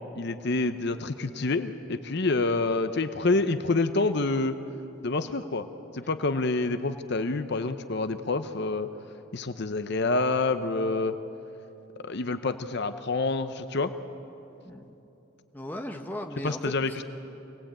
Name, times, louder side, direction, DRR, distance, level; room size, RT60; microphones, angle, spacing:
voice 1, 0.2-4.5 5.0-5.7 5.9-8.9 9.3-11.1 12.0-13.9 16.4-17.0, left 3 dB, 55° left, 10 dB, 0.8 m, -27 dB
voice 2, 15.5-17.0, left 1 dB, 10° left, 4 dB, 1.1 m, -37 dB
25.0 x 18.5 x 8.8 m, 2.9 s
head